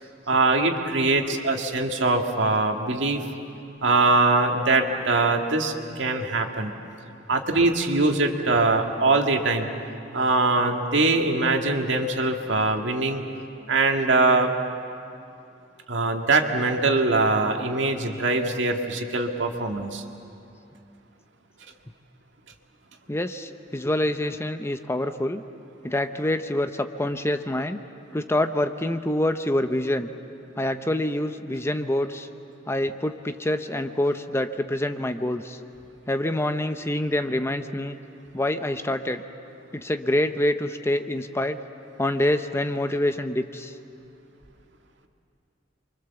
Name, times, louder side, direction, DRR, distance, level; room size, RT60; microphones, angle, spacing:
voice 1, 0.3-3.2 3.8-6.7 7.3-9.7 10.1-13.2 13.7-14.5 15.9-20.0, right 3 dB, 80° right, 3 dB, 2.0 m, -22 dB
voice 2, 23.1-25.4 25.8-27.8 28.1-30.1 30.6-32.3 32.7-35.6 36.1-38.0 38.3-39.2 39.7-41.6 42.0-43.7, left 1 dB, 15° left, 8 dB, 0.7 m, -26 dB
29.0 x 24.0 x 7.1 m, 2.6 s
head